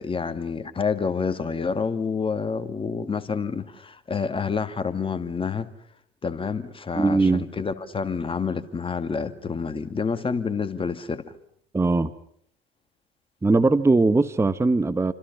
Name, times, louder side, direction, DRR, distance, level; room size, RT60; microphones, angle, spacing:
voice 1, 0.0-5.7 6.2-11.3, left 5 dB, 20° left, 2.1 m, -28 dB
voice 2, 7.0-7.4 11.7-12.1 13.4-15.1, right 3 dB, 10° right, 1.1 m, -20 dB
29.5 x 26.0 x 5.8 m
hypercardioid pair, 85°, 29 cm